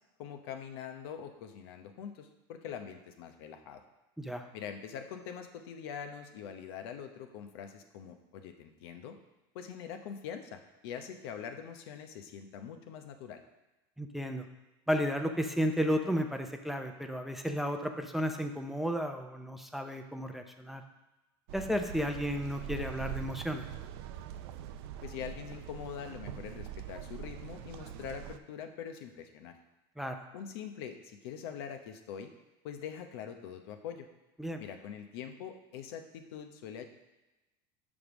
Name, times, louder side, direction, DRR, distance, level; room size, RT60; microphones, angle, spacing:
voice 1, 0.2-3.8 4.5-9.2 9.5-13.4 25.0-29.5 30.3-32.3 32.6-34.1 34.6-36.8, left 8 dB, 80° left, 7 dB, 0.8 m, -43 dB
voice 2, 4.2-4.5 14.0-14.4 14.9-20.8 21.5-23.7 30.0-30.2 34.4-34.6, equal, ahead, 5 dB, 0.5 m, -33 dB
sound 1, 21.5-28.4, right 10 dB, 80° right, 0.4 m, -43 dB
5.3 x 4.9 x 6.1 m, 1.0 s
supercardioid pair, 120°, 13 cm